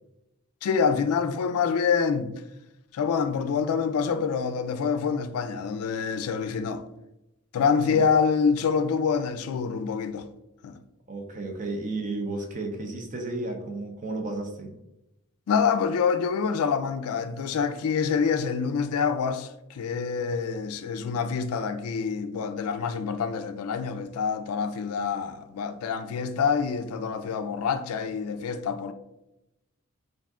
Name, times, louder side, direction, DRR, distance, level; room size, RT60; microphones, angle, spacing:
voice 1, 0.6-2.3 2.9-6.8 7.5-10.3 10.6-10.8 15.5-28.9, left 6 dB, 75° left, 0.3 m, -26 dB
voice 2, 11.1-14.8, right 2 dB, 35° right, 0.6 m, -33 dB
3.5 x 2.6 x 3.5 m
head